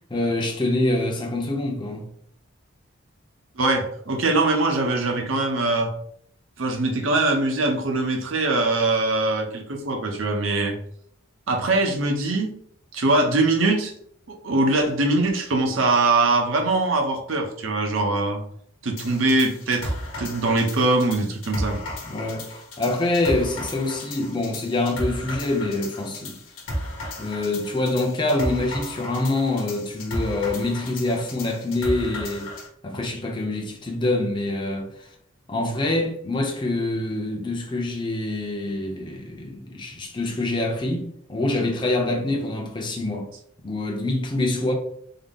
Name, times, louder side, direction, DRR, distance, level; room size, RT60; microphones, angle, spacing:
voice 1, 0.1-2.1 22.0-26.4 27.2-32.5 32.8-35.1 35.5-43.3 43.6-44.7, left 2 dB, 20° left, 0.6 m, -25 dB
voice 2, 3.6-5.9 6.6-10.8 11.5-12.5 12.9-13.9 14.3-18.4 18.8-21.8, right 2 dB, 70° right, 0.7 m, -22 dB
sound 1, 19.0-32.7, left 1 dB, 70° left, 1.0 m, -34 dB
3.7 x 2.0 x 3.6 m
head